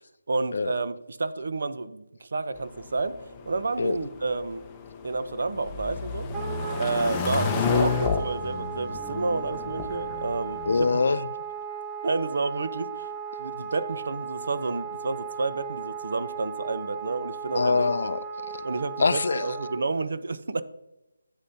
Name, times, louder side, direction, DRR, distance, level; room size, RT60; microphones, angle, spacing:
voice 1, 0.3-3.2 3.5-4.6 5.0-6.3 6.8-10.9 12.0-13.1 13.4-17.9 18.6-20.6, right 3 dB, 60° right, 0.7 m, -30 dB
sound 1, 2.6-10.9, left 5 dB, 15° left, 0.7 m, -31 dB
Wind instrument woodwind instrument, 6.3-19.8, right 6 dB, 5° right, 1.0 m, -36 dB
voice 2, 10.7-11.3 17.5-19.6, left 4 dB, 55° left, 0.4 m, -25 dB
11.5 x 8.2 x 2.8 m
figure-of-eight pair, 165°, 0 cm